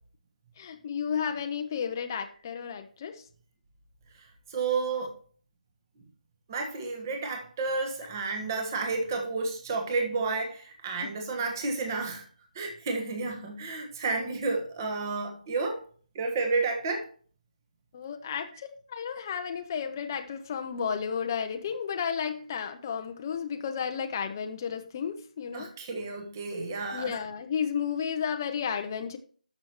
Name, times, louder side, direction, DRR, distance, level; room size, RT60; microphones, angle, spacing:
voice 1, 0.6-3.2 5.0-5.1 11.0-11.1 17.9-25.7 26.9-29.2, left 7 dB, 20° left, 0.7 m, -33 dB
voice 2, 4.5-5.2 6.5-12.2 12.5-15.8 16.1-17.1 25.5-27.1, right 3 dB, 25° right, 1.3 m, -31 dB
13.0 x 6.2 x 3.0 m
figure-of-eight pair, 165°, 5 cm